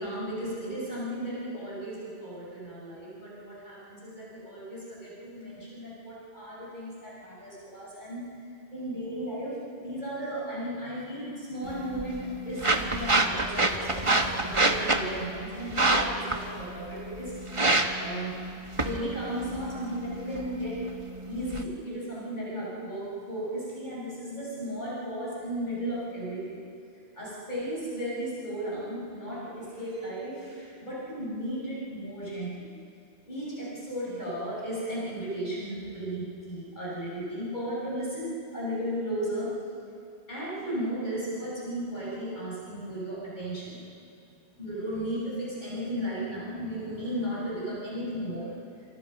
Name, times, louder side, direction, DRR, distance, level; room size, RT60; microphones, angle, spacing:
voice 1, 0.0-8.3 8.7-17.3 18.0-18.4 18.7-20.8 21.3-26.6 27.2-32.7 33.2-39.6 40.3-43.8 44.6-48.5, equal, 45° left, -7 dB, 6.7 m, -35 dB
sound 1, 11.6-21.6, right 2 dB, 30° right, 1.4 m, -28 dB
29.0 x 27.5 x 5.5 m, 2.5 s
omnidirectional pair, 1.1 m